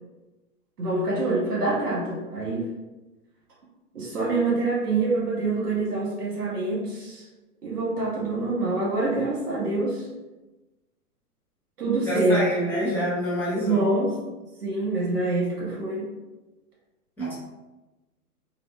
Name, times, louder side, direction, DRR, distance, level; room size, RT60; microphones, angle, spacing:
voice 1, 0.8-2.6 3.9-7.2 7.6-10.1 11.8-12.9 13.5-14.2 14.6-16.1, right 2 dB, 75° right, -5 dB, 1.5 m, -26 dB
voice 2, 12.1-13.9 17.2-17.3, equal, 5° left, -10 dB, 0.9 m, -27 dB
4.1 x 2.0 x 2.4 m, 1.1 s
hypercardioid pair, 120°, 47 cm